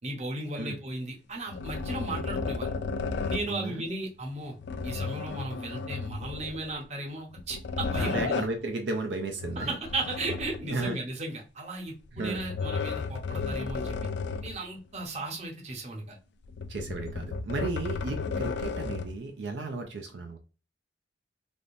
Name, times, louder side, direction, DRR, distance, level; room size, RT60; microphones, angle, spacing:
voice 1, 0.0-2.7 3.3-4.6 4.8-8.4 9.6-14.0 14.4-16.2, right 2 dB, 40° right, 0 dB, 0.8 m, -35 dB
sound 1, 1.5-3.6 4.6-6.7 7.3-8.6 9.4-10.9 12.1-14.6 15.0-15.1 16.4-19.2, left 4 dB, 70° left, 0.3 m, -34 dB
voice 2, 3.5-3.8 8.0-9.8 10.7-11.0 12.1-12.4 16.7-20.4, right 3 dB, 80° right, 4 dB, 0.5 m, -34 dB
3.4 x 2.6 x 2.5 m, 0.34 s
head